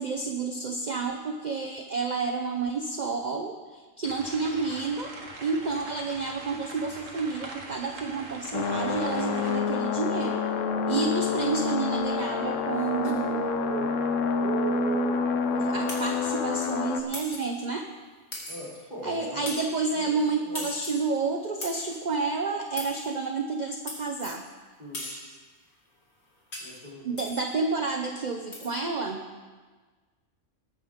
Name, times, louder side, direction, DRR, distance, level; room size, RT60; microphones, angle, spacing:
voice 1, 0.0-5.1 5.4-10.4 10.9-13.9 14.4-17.9 19.0-24.4 27.0-29.2, right 4 dB, 40° right, 4 dB, 0.7 m, -30 dB
sound 1, 4.0-9.6, right 2 dB, 75° right, 1.8 m, -43 dB
sound 2, 8.5-17.0, left 5 dB, 70° left, 1.1 m, -28 dB
sound 3, 15.9-16.2 17.1-17.5 18.3-18.8 19.5-19.8 20.5-21.1 21.6-22.0 22.8-23.1 23.9-24.4 24.9-25.3 26.5-26.8 27.2-27.5 28.5-28.7, left 1 dB, 55° left, 2.6 m, -39 dB
voice 2, 18.5-19.5 19.9-20.1 20.4-20.6 24.8-25.1 26.6-27.2, equal, 35° left, -5 dB, 3.2 m, -41 dB
20.0 x 9.3 x 3.6 m, 1.4 s
omnidirectional pair, 1.4 m